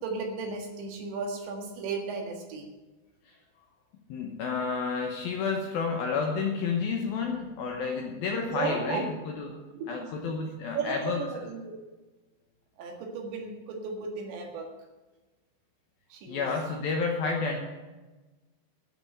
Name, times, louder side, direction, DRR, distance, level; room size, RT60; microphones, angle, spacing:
voice 1, 0.0-2.7 8.4-9.1 9.7-10.1 10.7-11.7 12.8-14.7 16.1-16.5 17.5-17.6, right 4 dB, 70° right, 2 dB, 4.0 m, -35 dB
voice 2, 4.1-9.6 9.9-11.5 16.3-17.6, left 5 dB, 70° left, 2 dB, 2.4 m, -30 dB
11.5 x 6.9 x 9.6 m, 1.2 s
omnidirectional pair, 5.5 m